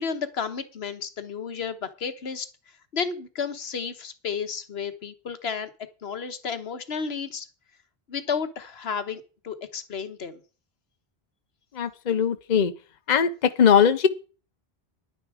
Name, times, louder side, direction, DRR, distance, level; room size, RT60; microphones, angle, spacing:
voice 1, 0.0-2.5 2.9-5.7 6.0-7.5 8.1-10.4, left 6 dB, 80° left, 1.3 m, -32 dB
voice 2, 11.8-12.7 13.1-13.3 13.6-14.1, left 7 dB, 50° left, 0.9 m, -19 dB
10.5 x 9.7 x 4.8 m
omnidirectional pair, 1.0 m